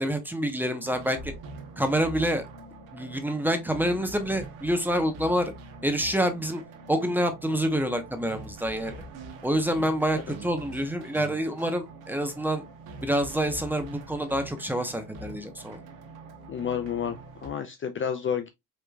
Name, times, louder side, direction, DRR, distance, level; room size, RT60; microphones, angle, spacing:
voice 1, 0.0-1.3 1.8-2.4 2.9-5.5 5.8-6.6 6.9-9.0 9.4-12.6 13.0-15.8, equal, 5° right, 1.0 m, -27 dB
sound 1, 0.8-17.5, right 2 dB, 85° right, 1.1 m, -44 dB
voice 2, 16.5-18.5, left 8 dB, 35° left, 0.6 m, -30 dB
4.9 x 3.3 x 2.3 m
supercardioid pair, 85°, 36 cm